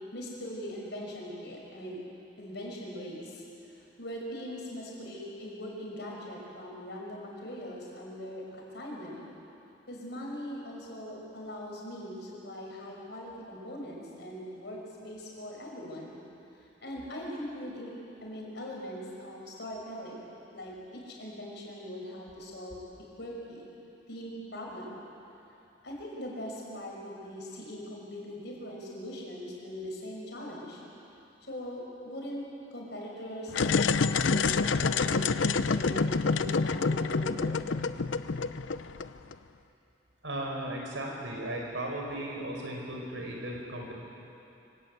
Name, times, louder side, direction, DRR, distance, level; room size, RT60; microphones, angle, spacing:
voice 1, 0.1-2.0 2.4-3.4 3.7-9.2 9.9-16.2 16.8-17.9 18.2-20.2 20.5-22.8 23.2-23.7 24.1-25.0 25.8-30.8 31.4-34.5 34.7-37.6, equal, 60° left, -2 dB, 5.8 m, -41 dB
sound 1, 33.5-39.3, left 4 dB, 85° left, 0.7 m, -27 dB
voice 2, 40.2-43.9, right 1 dB, 90° right, 0 dB, 5.0 m, -36 dB
25.5 x 17.5 x 8.3 m, 2.8 s
head